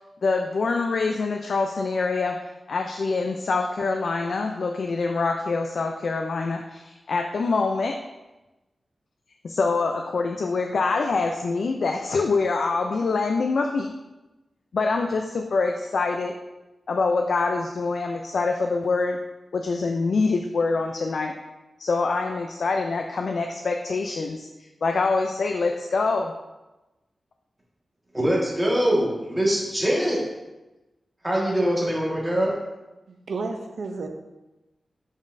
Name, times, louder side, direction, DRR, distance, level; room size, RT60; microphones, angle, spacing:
voice 1, 0.2-8.0 9.4-13.9 14.7-16.4 16.9-19.2 19.5-21.4 21.8-24.5 24.8-26.3, left 4 dB, 75° left, 3 dB, 0.4 m, -25 dB
voice 2, 28.1-30.2 31.2-32.6, equal, 10° right, -5 dB, 1.7 m, -23 dB
voice 3, 33.1-34.1, right 3 dB, 80° right, 5 dB, 0.6 m, -32 dB
7.2 x 5.2 x 2.6 m, 1.1 s
wide cardioid pair, 115°, 0 cm